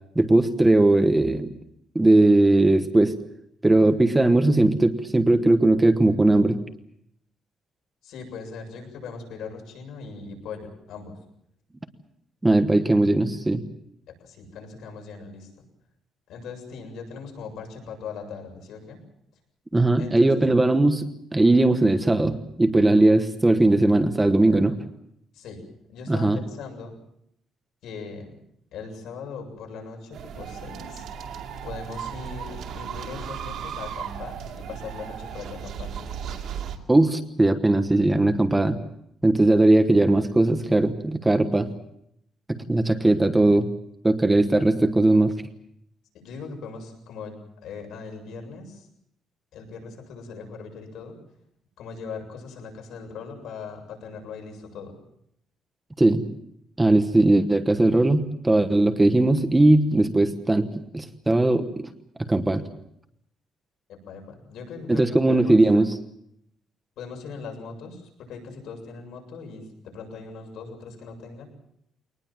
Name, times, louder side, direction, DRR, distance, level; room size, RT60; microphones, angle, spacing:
voice 1, 0.1-1.5 1.9-3.1 3.6-6.6 12.4-13.6 19.7-21.1 21.3-24.7 26.1-26.4 36.9-38.8 39.2-41.7 42.5-43.7 44.0-45.4 56.0-56.2 56.8-60.7 60.9-61.9 62.2-62.6 64.9-65.9, right 2 dB, 10° right, 8 dB, 1.1 m, -19 dB
voice 2, 8.0-11.2 14.1-15.6 16.3-19.0 20.0-20.5 25.3-26.9 27.8-28.4 28.7-31.1 31.6-36.0 46.1-48.9 49.5-51.2 51.8-55.0 63.9-65.6 67.0-71.5, left 5 dB, 70° left, 3 dB, 7.6 m, -40 dB
sound 1, 30.1-36.8, right 8 dB, 60° right, 2.5 m, -36 dB
23.5 x 20.0 x 7.4 m, 0.75 s
cardioid pair, 175°, 0 cm